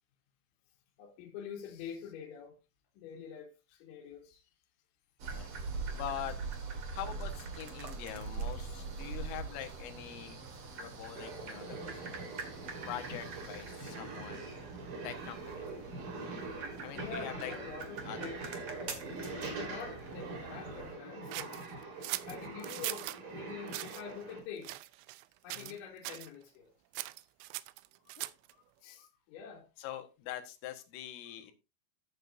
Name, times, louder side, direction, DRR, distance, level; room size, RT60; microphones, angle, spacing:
voice 1, 1.0-2.6 3.0-4.4 17.0-19.1 19.4-21.6 22.3-24.8 25.4-26.7 28.0-28.2 28.5-28.6 29.0-29.7, left 7 dB, 75° left, 3.8 m, -46 dB
sound 1, 5.2-20.9, right 4 dB, 65° right, 1.3 m, -43 dB
voice 2, 5.3-5.7 5.9-6.4 6.9-10.4 10.8-12.3 12.9-14.5 15.0-15.7 16.8-17.5 18.1-18.2 18.9-19.0 21.4-21.7 25.5-25.8 28.2-28.3 28.8-29.1 29.8-31.5, left 11 dB, 90° left, 4.0 m, -44 dB
sound 2, 11.1-24.4, right 3 dB, 45° right, 4.9 m, -44 dB
sound 3, 21.3-23.2 23.7-24.0 24.6-25.2 25.5-25.8 26.0-26.3 26.9-28.5, right 19 dB, 85° right, 3.0 m, -40 dB
14.0 x 8.0 x 2.6 m
omnidirectional pair, 5.7 m